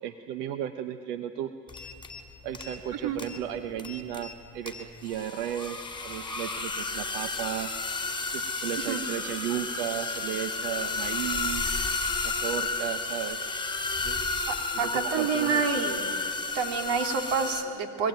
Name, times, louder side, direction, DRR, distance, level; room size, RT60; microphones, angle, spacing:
voice 1, 0.0-1.9 2.4-7.7 8.3-11.7 12.2-13.4 14.0-14.3 14.7-15.9, right 11 dB, 90° right, 8 dB, 1.1 m, -35 dB
sound 1, 1.7-2.2 2.5-2.9 3.2-3.4 3.8-4.4 4.7-17.6, left 3 dB, 10° left, 4.7 m, -32 dB
voice 2, 14.5-16.0 16.5-18.1, right 6 dB, 65° right, 3 dB, 3.4 m, -28 dB
23.5 x 22.0 x 9.3 m, 2.5 s
supercardioid pair, 90°, 46 cm